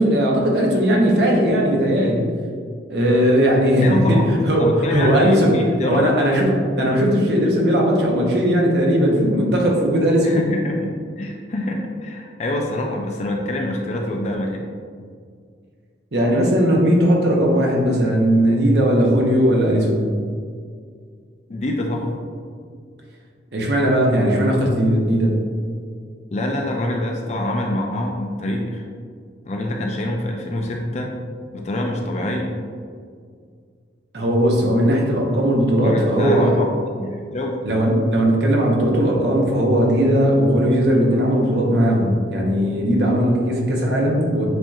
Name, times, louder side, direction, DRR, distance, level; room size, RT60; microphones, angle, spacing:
voice 1, 0.0-2.3 2.9-10.4 16.1-20.1 23.5-25.4 34.1-36.6 37.6-44.5, equal, 65° right, -1 dB, 0.9 m, -18 dB
voice 2, 3.8-6.1 10.2-14.7 21.5-22.2 26.3-28.8 29.5-31.1 31.5-32.5 35.8-36.7 37.0-37.6, left 1 dB, 40° left, 1 dB, 0.4 m, -25 dB
7.6 x 2.8 x 2.4 m, 2.1 s
head